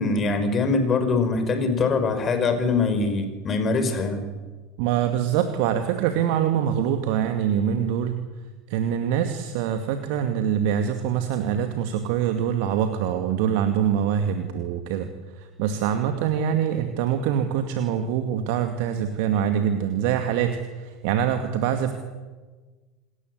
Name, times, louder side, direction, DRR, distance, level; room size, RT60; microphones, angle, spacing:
voice 1, 0.0-4.3, left 4 dB, 30° left, 9 dB, 5.4 m, -23 dB
voice 2, 4.8-8.2 8.7-15.1 15.4-21.9, right 9 dB, 60° right, 6 dB, 2.2 m, -24 dB
28.0 x 20.0 x 8.0 m, 1.3 s
figure-of-eight pair, 80°, 0 cm